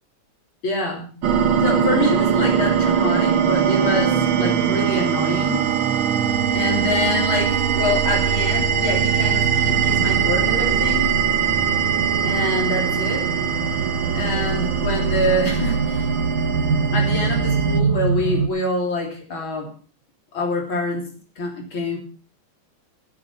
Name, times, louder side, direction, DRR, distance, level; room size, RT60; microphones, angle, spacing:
voice 1, 0.6-1.1 1.6-5.7 6.5-11.1 12.2-13.3 14.1-16.1 16.9-19.7 20.3-21.1 21.4-22.0, left 2 dB, 80° left, 0 dB, 4.1 m, -25 dB
sound 1, 1.2-17.8, right 8 dB, 80° right, 1.9 m, -21 dB
sound 2, 8.5-18.5, right 5 dB, 45° right, 1.6 m, -26 dB
16.0 x 7.8 x 7.1 m, 0.40 s
omnidirectional pair, 2.2 m